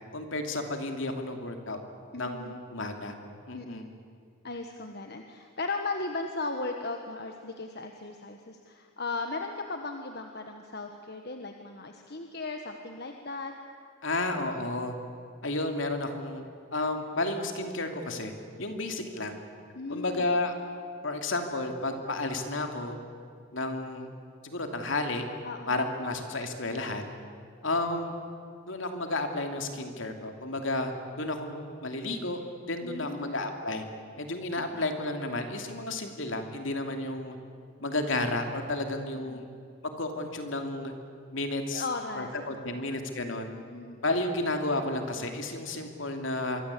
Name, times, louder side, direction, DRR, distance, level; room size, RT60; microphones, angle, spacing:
voice 1, 0.1-1.8 2.2-3.1 3.5-3.8 14.0-14.9 15.4-16.4 16.7-18.3 18.6-19.3 19.9-20.5 21.0-23.0 23.5-24.1 24.4-25.2 25.7-27.1 27.6-28.1 28.7-32.4 32.7-33.8 34.2-37.4 37.8-39.5 40.0-40.9 41.3-41.8 42.2-43.5 44.0-46.6, left 2 dB, 65° left, 5 dB, 2.8 m, -32 dB
voice 2, 2.1-2.5 3.5-3.9 4.4-13.5 19.7-20.3 25.4-25.8 32.8-33.4 34.6-34.8 39.1-39.4 41.7-42.9 43.5-44.0, left 3 dB, 50° left, 4 dB, 1.5 m, -37 dB
26.0 x 23.0 x 8.5 m, 2.2 s
head